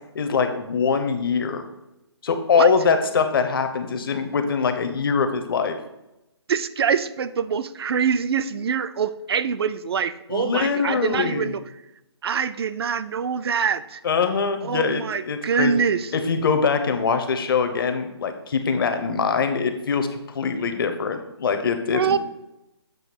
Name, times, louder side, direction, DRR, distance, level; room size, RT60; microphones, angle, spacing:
voice 1, 0.1-1.7 2.2-5.8 10.3-11.5 14.0-15.7 16.1-22.2, left 5 dB, 50° left, 8 dB, 0.8 m, -23 dB
voice 2, 6.5-11.6 12.2-14.0 14.6-16.1 21.9-22.2, right 6 dB, 60° right, 14 dB, 0.4 m, -24 dB
7.8 x 2.7 x 5.8 m, 0.93 s
hypercardioid pair, 160°, 15 cm